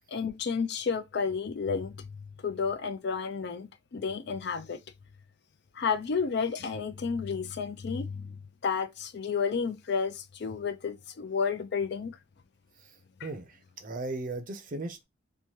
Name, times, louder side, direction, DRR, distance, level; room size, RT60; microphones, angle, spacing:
voice 1, 0.1-4.8 5.7-12.2 13.2-13.3, left 5 dB, 55° left, 0.4 m, -31 dB
voice 2, 13.2-15.1, right 2 dB, 40° right, 0.5 m, -37 dB
3.1 x 2.2 x 2.8 m
head